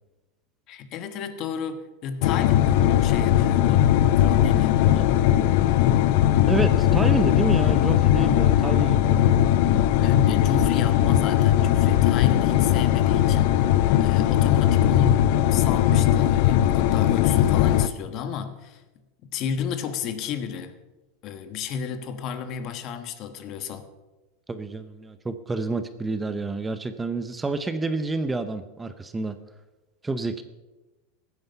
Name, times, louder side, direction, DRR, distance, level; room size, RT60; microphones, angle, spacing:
voice 1, 0.7-5.2 10.0-18.8 19.2-20.7 21.2-23.9, left 7 dB, 40° left, 10 dB, 1.3 m, -32 dB
sound 1, 2.2-17.9, left 12 dB, 60° left, 0.6 m, -19 dB
voice 2, 6.5-9.3 24.5-29.4 30.0-30.4, right 3 dB, 10° right, 11 dB, 0.7 m, -28 dB
16.0 x 9.5 x 5.6 m, 1.1 s
supercardioid pair, 140°, 0 cm